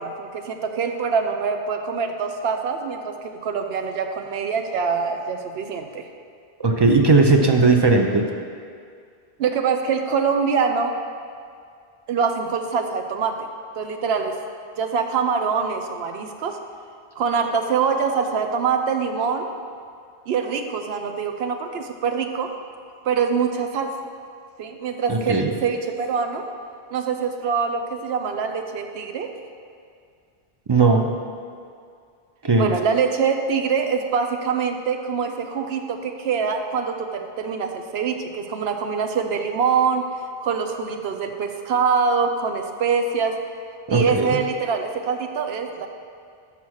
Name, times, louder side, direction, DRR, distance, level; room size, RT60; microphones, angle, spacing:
voice 1, 0.0-6.0 9.4-11.0 12.1-13.5 13.8-14.3 14.8-16.6 17.2-19.5 20.3-22.5 23.0-23.9 24.6-26.5 26.9-29.3 32.6-40.1 40.4-43.4 43.9-45.9, right 6 dB, 75° right, 5 dB, 0.9 m, -24 dB
voice 2, 6.6-8.2 25.1-25.5 30.7-31.1 32.4-32.7 43.9-44.4, right 3 dB, 35° right, 3 dB, 0.4 m, -17 dB
5.9 x 5.7 x 6.3 m, 2.3 s
omnidirectional pair, 1.1 m